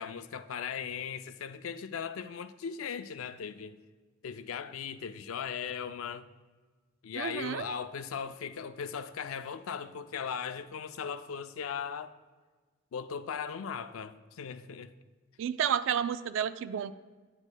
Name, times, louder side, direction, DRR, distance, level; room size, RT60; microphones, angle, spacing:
voice 1, 0.0-3.8 4.2-6.3 7.0-12.1 12.9-14.9, left 7 dB, 85° left, 0.4 m, -38 dB
voice 2, 7.2-7.7 15.4-16.9, right 8 dB, 65° right, 0.3 m, -31 dB
9.6 x 8.0 x 2.2 m
head